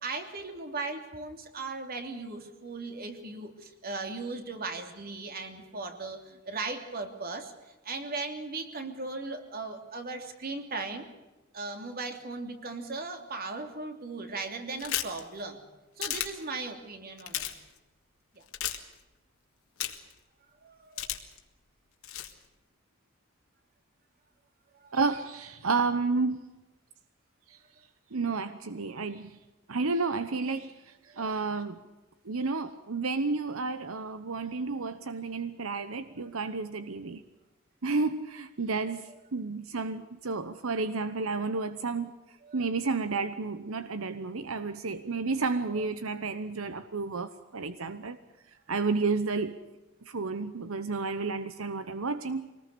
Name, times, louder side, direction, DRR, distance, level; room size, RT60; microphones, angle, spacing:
voice 1, 0.0-11.1 11.5-15.6 16.0-17.5 18.3-18.4 20.6-21.1 24.8-25.0 31.1-31.3 42.4-42.6 45.7-45.8, right 3 dB, 45° right, 5 dB, 3.0 m, -38 dB
sound 1, 14.8-15.2 16.0-16.3 17.2-17.5 18.5-18.8 19.8-20.1 21.0-21.4 22.0-22.3, left 12 dB, 85° left, 2.4 m, -32 dB
voice 2, 24.9-26.4 27.5-27.6 28.1-29.4 29.7-31.8 32.2-37.2 37.8-42.1 42.5-48.2 48.7-49.6 50.0-52.5, right 4 dB, 85° right, 11 dB, 1.0 m, -31 dB
24.5 x 19.5 x 6.9 m, 1.1 s
head